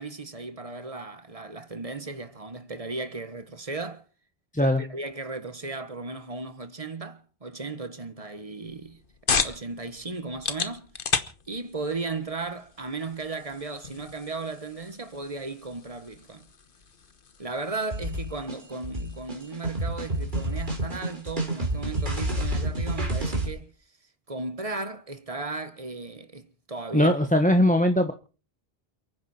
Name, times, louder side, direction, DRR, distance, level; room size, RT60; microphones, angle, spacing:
voice 1, 0.0-4.0 4.6-9.0 9.4-10.9 11.5-16.5 17.4-23.7 24.3-27.1, right 3 dB, 35° right, 1.5 m, -36 dB
sound 1, 8.6-23.8, left 5 dB, 55° left, 1.3 m, -37 dB
sound 2, 17.9-23.5, right 1 dB, 50° right, 3.6 m, -29 dB
voice 2, 26.9-28.1, left 1 dB, 10° left, 1.1 m, -20 dB
28.5 x 9.8 x 4.3 m
omnidirectional pair, 1.1 m